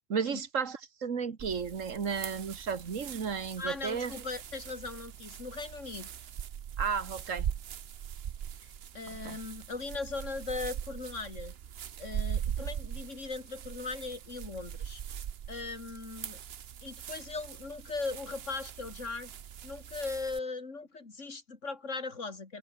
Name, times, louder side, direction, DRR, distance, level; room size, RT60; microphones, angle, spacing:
voice 1, 0.1-4.1 6.8-7.5 9.1-9.4, right 6 dB, 85° right, 2.0 m, -33 dB
sound 1, 1.4-20.4, right 9 dB, 55° right, 1.0 m, -41 dB
voice 2, 3.6-6.1 8.6-11.6 12.0-15.0 15.5-16.4 16.8-19.3 19.6-22.6, left 3 dB, 70° left, 3.1 m, -39 dB
open air
omnidirectional pair, 1.3 m